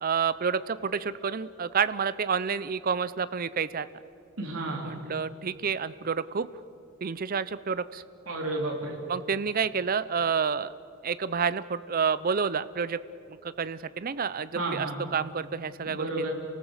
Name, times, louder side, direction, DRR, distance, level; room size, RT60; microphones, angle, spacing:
voice 1, 0.0-3.9 4.8-6.5 7.0-8.0 9.1-10.7 11.0-13.0 13.4-16.3, right 6 dB, 45° right, 15 dB, 0.6 m, -29 dB
voice 2, 4.4-4.9 8.3-9.0 14.5-15.0 15.9-16.3, right 2 dB, 75° right, 0 dB, 3.3 m, -32 dB
28.0 x 18.5 x 8.0 m, 2.7 s
head